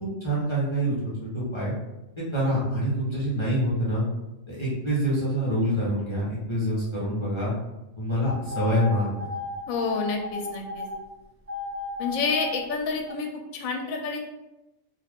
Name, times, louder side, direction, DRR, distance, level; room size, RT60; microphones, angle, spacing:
voice 1, 0.0-0.9 1.2-1.7 2.3-4.0 4.5-7.5 8.0-9.1, equal, 25° left, -9 dB, 0.8 m, -26 dB
sound 1, 8.3-11.0 11.5-12.6 13.1-13.2, left 3 dB, 15° right, 0.4 m, -34 dB
voice 2, 9.7-10.9 12.0-14.2, left 4 dB, 80° left, 2 dB, 1.0 m, -29 dB
2.6 x 2.4 x 3.4 m, 0.95 s
omnidirectional pair, 1.4 m